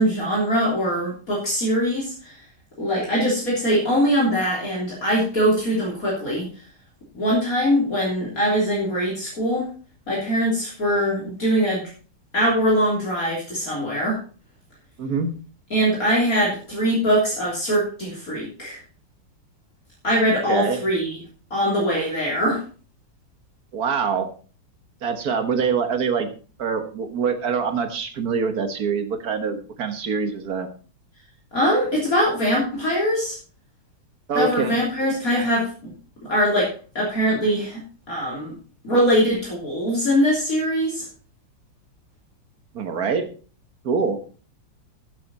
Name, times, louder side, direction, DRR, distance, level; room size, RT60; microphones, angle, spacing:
voice 1, 0.0-2.4 2.8-6.5 7.1-9.7 10.1-11.8 12.3-14.2 15.7-18.8 20.0-21.2 21.5-22.6 31.5-33.4 34.3-35.9 36.3-36.7 37.0-37.8 38.1-38.5 38.8-41.1, equal, 45° left, -5 dB, 3.7 m, -22 dB
voice 2, 15.0-15.3 20.5-20.8 23.7-24.3 25.0-26.3 26.6-30.7 34.3-34.8 35.3-35.5 42.7-43.3 43.8-44.2, right 5 dB, 55° right, 8 dB, 1.8 m, -24 dB
12.0 x 8.5 x 4.2 m, 0.38 s
omnidirectional pair, 2.0 m